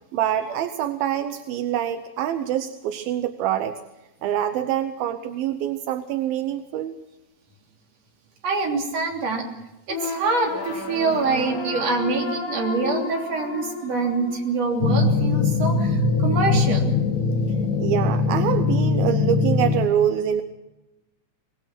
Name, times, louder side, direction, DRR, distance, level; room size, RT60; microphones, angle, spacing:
voice 1, 0.1-3.8 4.2-6.9 17.8-20.4, right 10 dB, 75° right, 8 dB, 2.3 m, -25 dB
voice 2, 8.4-9.5 9.9-17.0, right 3 dB, 40° right, 1 dB, 3.9 m, -25 dB
sound 1, 9.9-14.9, left 3 dB, 30° left, 6.9 m, -32 dB
sound 2, 14.8-19.9, left 4 dB, 55° left, 2.9 m, -21 dB
25.5 x 19.5 x 6.1 m, 0.97 s
omnidirectional pair, 5.2 m